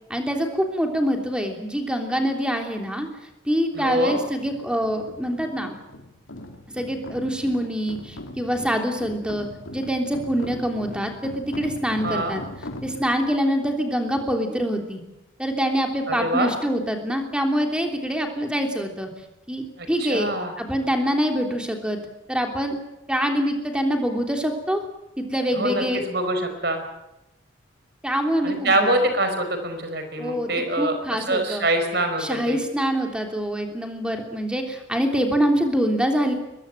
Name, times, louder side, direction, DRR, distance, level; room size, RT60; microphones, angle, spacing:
voice 1, 0.1-3.1 3.4-5.8 6.7-12.4 12.8-15.0 15.4-19.1 19.5-20.3 20.6-22.0 22.3-22.8 23.1-24.8 25.2-26.0 28.0-29.0 30.2-30.5 30.8-31.6 32.2-36.3, equal, 5° right, 3 dB, 3.1 m, -25 dB
voice 2, 3.7-4.2 12.0-12.4 16.1-16.5 19.8-20.5 25.6-26.8 28.4-32.6, right 1 dB, 55° right, 7 dB, 5.0 m, -25 dB
sound 1, 3.8-13.3, left 1 dB, 85° left, 3.3 m, -40 dB
23.0 x 21.5 x 9.1 m, 0.92 s
head